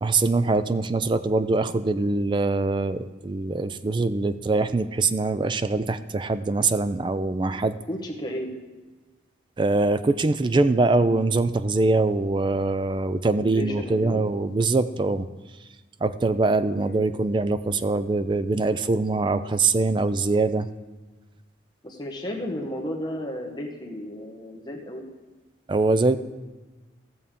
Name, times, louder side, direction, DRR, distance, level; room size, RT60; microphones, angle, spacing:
voice 1, 0.0-7.8 9.6-15.3 16.0-20.7 25.7-26.2, right 3 dB, 25° right, 13 dB, 0.3 m, -23 dB
voice 2, 7.9-8.5 13.2-14.2 16.8-17.0 21.8-25.0, left 1 dB, 20° left, 1 dB, 1.0 m, -33 dB
15.0 x 7.0 x 3.6 m, 1.2 s
head